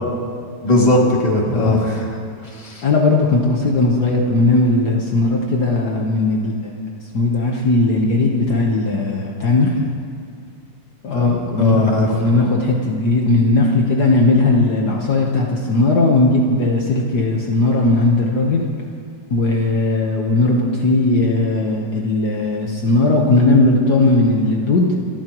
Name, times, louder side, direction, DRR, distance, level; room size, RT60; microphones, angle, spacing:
voice 1, 0.6-2.2 2.5-2.8 11.1-12.1, left 1 dB, 20° left, -3 dB, 2.5 m, -18 dB
voice 2, 2.8-6.7 7.1-9.7 11.0-11.8 12.1-18.7 19.3-24.9, left 2 dB, 60° left, -1 dB, 1.8 m, -17 dB
28.5 x 13.5 x 3.1 m, 2.2 s
omnidirectional pair, 2.0 m